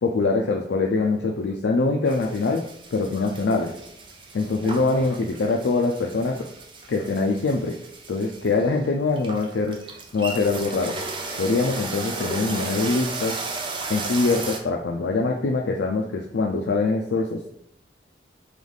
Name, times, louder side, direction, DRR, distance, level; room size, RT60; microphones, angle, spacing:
voice 1, 0.0-2.6 2.9-3.7 4.3-6.4 6.9-7.8 8.1-9.8 10.1-11.0 11.4-13.4 13.9-17.5, left 3 dB, 85° left, 0 dB, 0.4 m, -23 dB
sound 1, 2.1-14.6, right 3 dB, 30° right, 0.4 m, -35 dB
3.3 x 3.1 x 3.9 m, 0.73 s
head